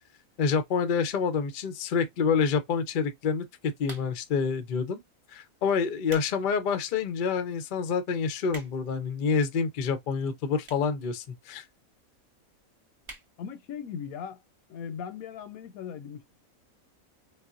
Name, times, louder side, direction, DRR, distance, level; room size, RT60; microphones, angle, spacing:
voice 1, 0.4-5.0 5.3-11.6, left 5 dB, 60° left, 0.5 m, -27 dB
sound 1, 3.8-4.4 5.1-5.3 5.8-6.3 6.8-6.9 7.5-7.6 7.8-7.9 8.1-9.0 9.8-9.9 10.6-11.0 11.3-11.4 11.6-11.7 11.9-12.0 12.3-12.5 13.0-13.3 13.7-13.8 14.0-14.1, right 2 dB, 30° right, 0.7 m, -45 dB
voice 2, 13.4-14.4 14.7-16.2, left 7 dB, 85° left, 1.0 m, -38 dB
4.0 x 2.0 x 2.4 m
omnidirectional pair, 1.5 m